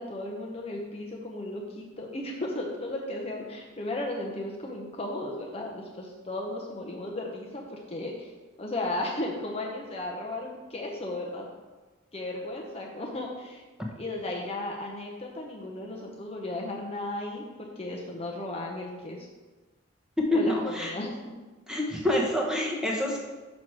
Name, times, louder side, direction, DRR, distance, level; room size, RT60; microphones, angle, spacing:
voice 1, 0.0-8.3 8.6-11.5 12.1-13.6 14.0-19.3 20.3-21.1, left 1 dB, 30° left, -1 dB, 0.7 m, -35 dB
voice 2, 20.3-20.9 21.7-23.2, left 1 dB, 5° right, -2 dB, 1.0 m, -27 dB
6.3 x 5.8 x 4.7 m, 1.2 s
head